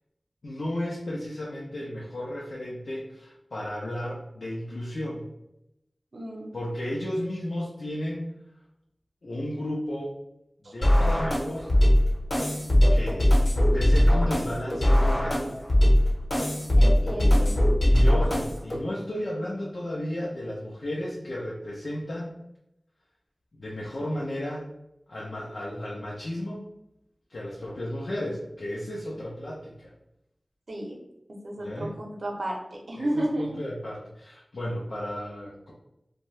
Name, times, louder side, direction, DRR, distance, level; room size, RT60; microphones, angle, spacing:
voice 1, 0.4-5.3 6.5-8.2 9.2-10.1 10.6-11.7 12.9-13.3 13.7-15.6 17.8-22.4 23.5-24.7 25.1-26.7 27.3-29.9 31.6-31.9 33.0-35.7, left 1 dB, 85° left, -5 dB, 0.5 m, -33 dB
voice 2, 6.1-6.5 10.6-10.7 16.7-17.6 30.7-31.0 31.4-33.6, right 1 dB, 80° right, 0 dB, 0.6 m, -32 dB
sound 1, 10.8-18.8, left 1 dB, 60° left, 0.9 m, -21 dB
2.6 x 2.2 x 3.1 m, 0.84 s
wide cardioid pair, 60°, 0 cm